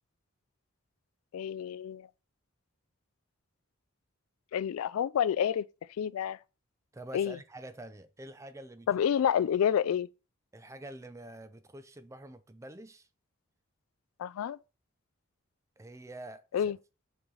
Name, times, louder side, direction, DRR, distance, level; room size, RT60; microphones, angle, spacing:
voice 1, 1.3-2.1 4.5-5.7 6.0-6.4 7.1-7.4 8.9-10.1 14.2-14.6 16.5-16.8, left 8 dB, 80° left, 0.3 m, -28 dB
voice 2, 6.9-9.2 10.5-13.1 15.8-16.7, right 1 dB, 15° right, 0.4 m, -47 dB
5.8 x 5.5 x 3.8 m
head